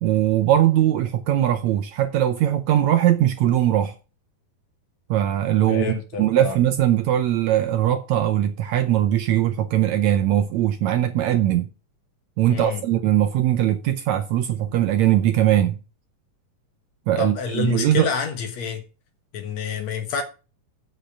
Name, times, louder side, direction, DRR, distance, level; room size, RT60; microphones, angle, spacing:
voice 1, 0.0-3.9 5.1-11.7 12.4-15.8 17.1-18.1, right 12 dB, 75° right, 1.8 m, -20 dB
voice 2, 5.7-6.6 12.5-12.8 17.2-18.8 19.3-20.2, left 5 dB, 60° left, 2.3 m, -28 dB
7.7 x 6.9 x 6.9 m
omnidirectional pair, 3.8 m